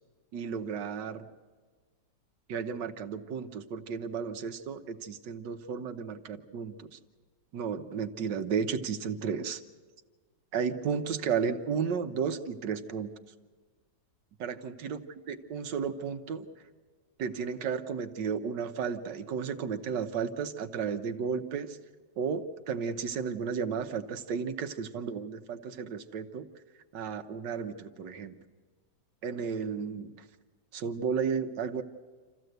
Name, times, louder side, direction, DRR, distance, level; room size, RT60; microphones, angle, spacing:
voice 1, 0.3-1.2 2.5-7.0 7.5-9.6 10.5-13.1 14.4-15.0 15.3-16.5 17.2-21.8 22.2-26.5 26.9-28.4 29.2-30.1 30.7-31.8, right 6 dB, 80° right, 8 dB, 1.6 m, -33 dB
27.5 x 15.0 x 8.0 m, 1.5 s
omnidirectional pair, 1.9 m